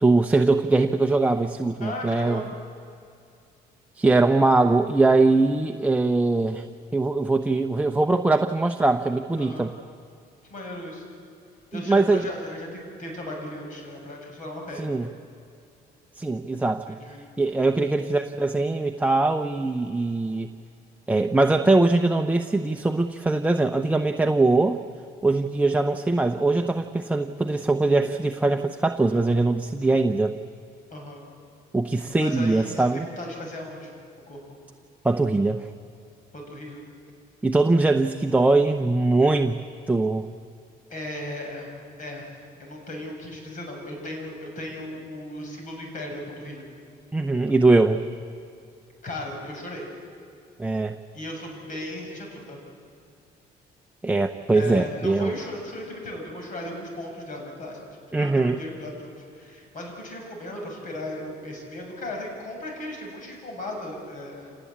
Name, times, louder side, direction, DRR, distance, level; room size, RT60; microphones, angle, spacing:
voice 1, 0.0-2.4 4.0-6.6 6.9-9.7 11.7-12.3 14.8-15.1 16.2-17.0 17.4-20.5 21.1-24.8 25.2-30.3 31.7-33.1 35.0-35.7 37.4-40.3 47.1-48.0 50.6-51.0 54.0-55.3 58.1-58.6, right 2 dB, 10° right, 5 dB, 0.8 m, -22 dB
voice 2, 1.8-2.5 9.4-9.7 10.5-11.1 11.7-14.9 16.9-17.3 17.5-17.8 30.9-31.3 31.9-34.0 34.3-34.6 36.3-36.8 40.9-41.7 42.0-42.2 42.6-46.6 49.0-49.9 51.1-52.6 54.5-57.8 58.2-64.6, left 1 dB, 50° left, 1 dB, 7.4 m, -36 dB
27.0 x 19.0 x 8.6 m, 2.5 s
cardioid pair, 110°, 17 cm